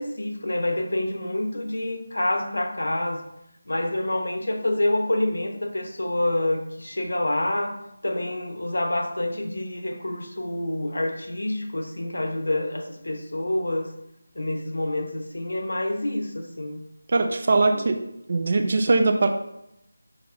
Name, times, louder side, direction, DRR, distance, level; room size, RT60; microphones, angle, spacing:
voice 1, 0.0-3.3 3.7-13.9 14.3-16.8 17.7-17.8, left 1 dB, 85° left, 4 dB, 0.8 m, -27 dB
voice 2, 17.1-18.0 18.3-19.3, right 3 dB, 35° right, 6 dB, 0.3 m, -21 dB
6.3 x 2.9 x 2.5 m, 0.81 s
figure-of-eight pair, 175°, 0 cm